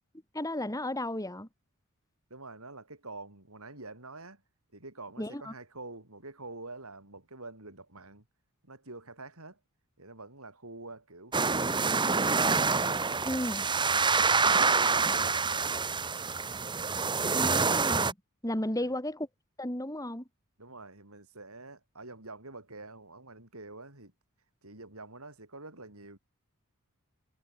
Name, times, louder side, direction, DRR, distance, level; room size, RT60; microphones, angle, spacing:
voice 1, 0.3-1.5 5.2-5.5 13.2-13.6 17.3-18.1 18.4-19.3 19.6-20.2, left 1 dB, 15° left, 4.4 m, -33 dB
voice 2, 2.3-4.4 4.7-8.2 8.6-9.6 10.0-12.5 13.8-15.7 18.7-18.9 20.6-24.1 24.6-26.2, right 2 dB, 75° right, 7.4 m, -47 dB
sound 1, 11.3-18.1, right 4 dB, 20° right, 1.2 m, -26 dB
head